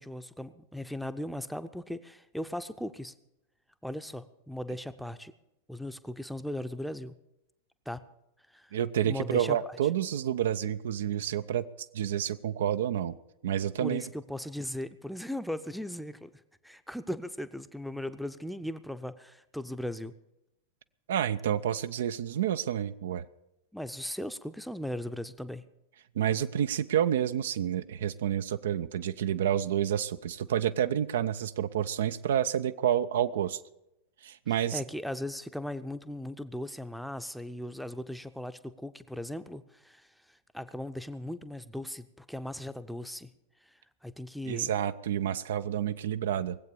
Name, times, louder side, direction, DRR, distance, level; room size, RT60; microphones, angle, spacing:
voice 1, 0.0-3.1 3.8-5.3 5.7-7.1 7.9-8.0 8.5-8.7 9.0-9.6 13.8-16.3 16.6-20.1 23.7-25.6 34.5-43.3 43.6-44.7, left 1 dB, ahead, 11 dB, 0.7 m, -38 dB
voice 2, 8.7-11.7 11.9-13.2 13.4-14.0 21.1-23.2 26.2-33.6 34.2-34.8 44.5-46.6, right 10 dB, 60° right, 12 dB, 0.5 m, -29 dB
19.0 x 8.1 x 6.9 m, 0.88 s
figure-of-eight pair, 90°, 0 cm